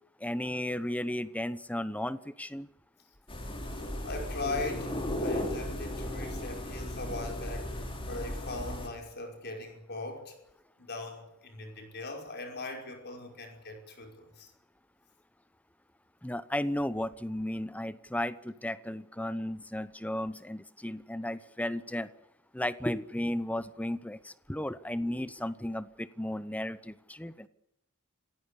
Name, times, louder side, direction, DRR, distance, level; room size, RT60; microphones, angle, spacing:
voice 1, 0.2-2.7 16.2-22.1 22.5-27.5, left 1 dB, 5° left, 0.9 m, -34 dB
sound 1, 3.3-8.9, left 1 dB, 25° left, 3.7 m, -36 dB
voice 2, 3.8-10.4 10.8-14.5, left 2 dB, 50° left, 5.4 m, -40 dB
27.0 x 16.5 x 8.6 m
head